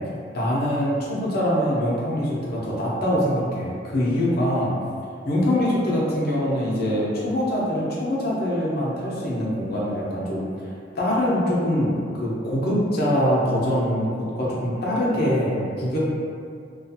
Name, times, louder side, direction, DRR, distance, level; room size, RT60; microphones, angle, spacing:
voice 1, 0.3-4.7 5.2-10.5 11.0-16.0, equal, 60° left, -5 dB, 0.7 m, -23 dB
2.4 x 2.3 x 2.7 m, 2.4 s
head